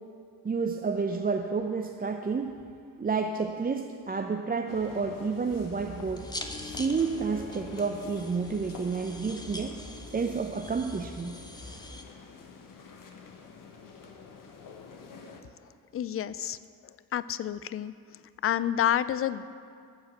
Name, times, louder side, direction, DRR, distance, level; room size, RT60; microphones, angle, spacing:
voice 1, 0.4-2.6 3.0-6.2 6.7-9.7 10.1-11.4, right 5 dB, 20° right, 3 dB, 0.6 m, -30 dB
sound 1, 4.7-15.4, left 5 dB, 50° left, 1.3 m, -47 dB
sound 2, 5.5-12.0, left 1 dB, 10° left, 1.1 m, -43 dB
voice 2, 15.9-16.6 17.1-17.9 18.4-19.5, left 10 dB, 35° left, 16 dB, 0.5 m, -28 dB
13.5 x 4.9 x 7.6 m, 2.3 s
hypercardioid pair, 60°, 42 cm